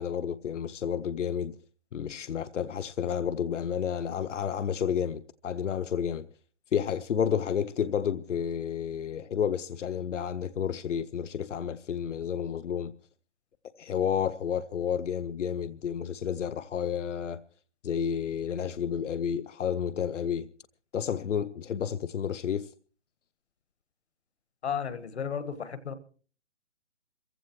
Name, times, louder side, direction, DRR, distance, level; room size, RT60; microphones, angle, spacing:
voice 1, 0.0-1.6 1.9-6.3 6.7-12.9 13.8-17.4 17.8-20.5 20.9-22.7, left 8 dB, 90° left, 0.7 m, -31 dB
voice 2, 24.6-25.9, left 7 dB, 65° left, 1.5 m, -33 dB
27.0 x 15.5 x 3.0 m
hypercardioid pair, 170°, 36 cm